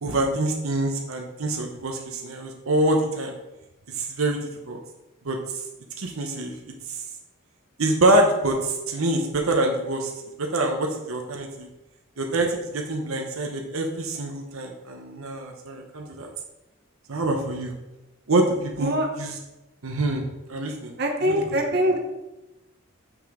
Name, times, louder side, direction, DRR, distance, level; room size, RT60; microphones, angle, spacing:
voice 1, 0.0-3.3 3.9-4.8 5.2-5.4 6.0-6.7 7.8-10.1 10.4-11.7 12.2-16.3 17.1-17.7 18.3-19.4 19.8-20.9 21.2-21.6, right 1 dB, 80° right, 2 dB, 0.8 m, -25 dB
voice 2, 21.0-22.0, equal, 50° right, 2 dB, 1.1 m, -23 dB
6.6 x 6.1 x 3.8 m, 0.99 s
head